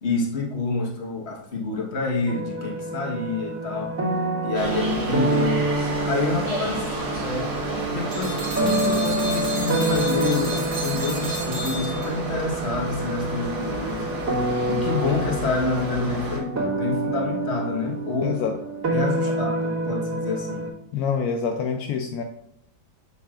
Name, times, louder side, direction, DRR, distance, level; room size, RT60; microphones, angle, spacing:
voice 1, 0.0-3.9 4.4-5.6 6.1-6.9 7.2-7.5 7.9-14.1 14.7-18.4 18.9-20.7, left 3 dB, 40° left, 0 dB, 1.4 m, -27 dB
sound 1, 2.3-20.7, right 2 dB, 55° right, 2.7 m, -28 dB
sound 2, 4.5-16.4, right 2 dB, 35° right, 1.5 m, -31 dB
sound 3, 8.1-12.4, right 2 dB, 75° right, 2.7 m, -33 dB
voice 2, 18.2-18.6 20.9-22.2, left 6 dB, 75° left, 4 dB, 0.9 m, -26 dB
8.5 x 6.8 x 2.4 m, 0.75 s
omnidirectional pair, 2.1 m